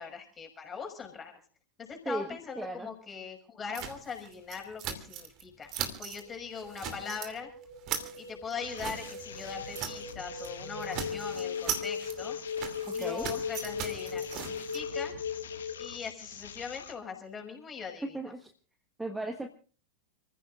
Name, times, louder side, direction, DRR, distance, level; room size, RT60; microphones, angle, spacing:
voice 1, 0.0-1.3 1.8-5.7 6.0-7.5 8.2-12.4 12.9-15.1 15.8-18.2, left 6 dB, 20° left, 2 dB, 5.6 m, -41 dB
voice 2, 2.6-2.9 12.9-13.3 18.1-18.5 19.0-19.6, right 2 dB, 5° right, 6 dB, 1.3 m, -36 dB
sound 1, 3.7-5.4 5.7-6.2 6.6-7.3 7.6-10.1 10.4-10.6 10.8-14.8, right 8 dB, 35° right, 2.8 m, -39 dB
sound 2, 6.2-16.1, left 5 dB, 85° left, 4.4 m, -38 dB
sound 3, 8.6-17.0, left 7 dB, 65° left, 1.8 m, -46 dB
30.0 x 15.0 x 2.5 m, 0.39 s
figure-of-eight pair, 90°, 0 cm